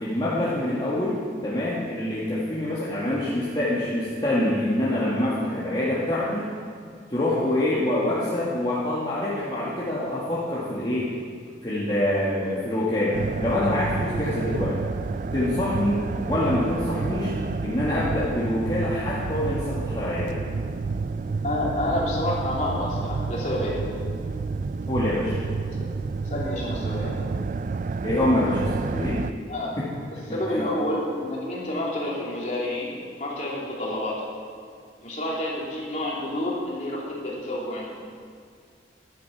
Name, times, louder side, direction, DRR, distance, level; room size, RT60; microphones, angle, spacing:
voice 1, 0.0-6.5 7.1-11.2 11.6-14.8 15.3-17.3 17.6-20.4 24.9-25.4 28.0-29.2 29.8-29.9 30.5-30.7, left 1 dB, 25° left, -8 dB, 1.7 m, -25 dB
sound 1, 13.1-29.3, right 4 dB, 45° right, 0.3 m, -30 dB
voice 2, 21.4-23.8 26.2-27.2 29.5-29.7 30.3-34.2 35.0-37.9, left 1 dB, 40° left, -4 dB, 3.0 m, -29 dB
15.0 x 11.0 x 4.8 m, 2.1 s
head